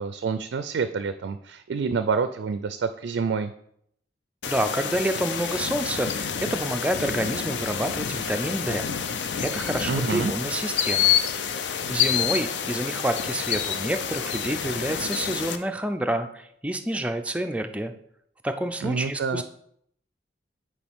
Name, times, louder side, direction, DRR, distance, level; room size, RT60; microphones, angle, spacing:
voice 1, 0.0-3.5 9.9-10.3 18.8-19.4, right 5 dB, 80° right, 10 dB, 0.3 m, -27 dB
sound 1, 4.4-15.6, left 8 dB, 80° left, 0.5 m, -28 dB
voice 2, 4.5-8.9 9.4-11.2 11.9-17.9 18.4-19.4, right 1 dB, 5° right, 6 dB, 0.4 m, -28 dB
8.6 x 4.7 x 3.5 m, 0.70 s
head